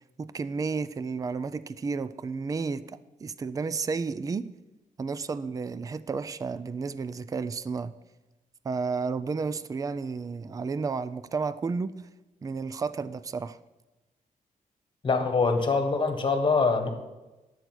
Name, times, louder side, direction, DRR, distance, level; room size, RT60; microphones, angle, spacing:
voice 1, 0.2-4.5 5.0-7.9 8.6-11.9 12.4-13.6, right 4 dB, 25° right, 0.3 m, -32 dB
voice 2, 15.0-16.9, left 4 dB, 35° left, 1.4 m, -24 dB
10.0 x 7.9 x 6.1 m
wide cardioid pair, 165°, 14 cm